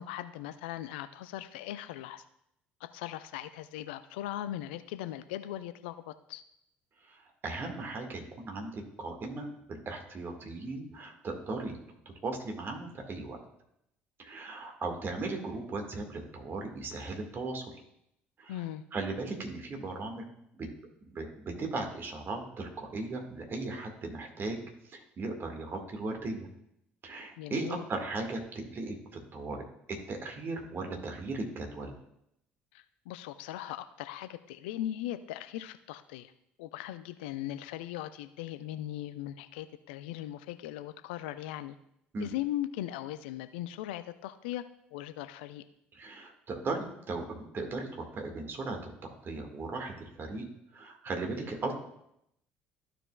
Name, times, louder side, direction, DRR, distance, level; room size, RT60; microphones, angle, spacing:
voice 1, 0.0-2.2 2.9-6.4 18.5-18.8 27.4-27.9 32.7-36.3 36.6-41.8 42.2-44.6 44.9-45.6, left 13 dB, 70° left, 11 dB, 0.4 m, -39 dB
voice 2, 7.0-11.8 12.2-13.4 14.2-17.7 18.4-18.6 18.9-20.2 20.5-20.7 21.0-24.6 24.8-26.5 27.0-29.6 29.9-31.9 42.1-42.3 45.9-50.5 50.7-51.7, right 3 dB, 40° right, 3 dB, 1.8 m, -37 dB
14.0 x 4.9 x 2.3 m, 0.76 s
figure-of-eight pair, 55°, 6 cm